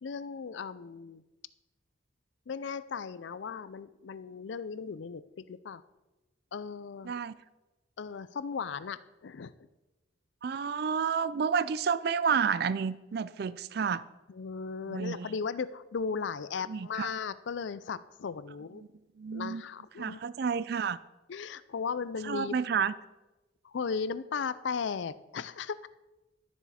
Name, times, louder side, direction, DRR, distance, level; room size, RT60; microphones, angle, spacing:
voice 1, 0.0-1.2 2.5-5.8 6.5-7.2 8.0-9.5 14.3-18.8 19.3-20.2 21.3-22.6 23.6-25.9, left 5 dB, 70° left, 16 dB, 0.4 m, -36 dB
voice 2, 10.4-14.0 14.9-15.3 16.7-17.1 19.2-19.6 20.0-21.0 22.3-22.9, right 6 dB, 55° right, 17 dB, 0.3 m, -30 dB
12.5 x 7.1 x 4.2 m, 1.1 s
head